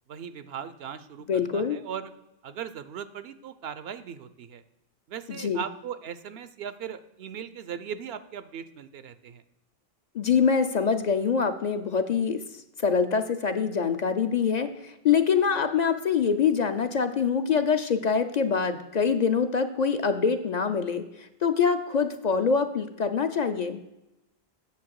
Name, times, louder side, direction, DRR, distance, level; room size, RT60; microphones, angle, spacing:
voice 1, 0.1-2.1 2.4-4.6 5.1-9.4, right 8 dB, 80° right, 13 dB, 0.8 m, -38 dB
voice 2, 1.3-1.8 5.4-5.6 10.1-12.4 12.8-21.0 21.4-23.8, left 6 dB, 50° left, 8 dB, 0.6 m, -24 dB
8.5 x 6.6 x 4.7 m, 0.93 s
omnidirectional pair, 1.0 m